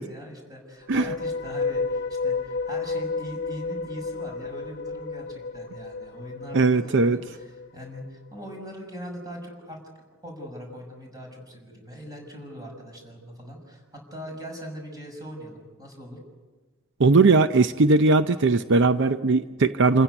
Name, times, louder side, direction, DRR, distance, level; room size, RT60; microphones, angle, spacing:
voice 1, 0.0-9.8 10.2-16.2, equal, 20° right, 1 dB, 6.3 m, -41 dB
sound 1, 0.8-8.1, left 4 dB, 60° left, 0.8 m, -32 dB
voice 2, 6.5-7.2 17.0-20.0, right 3 dB, 60° right, 10 dB, 0.7 m, -19 dB
28.0 x 16.0 x 9.3 m, 1.3 s
head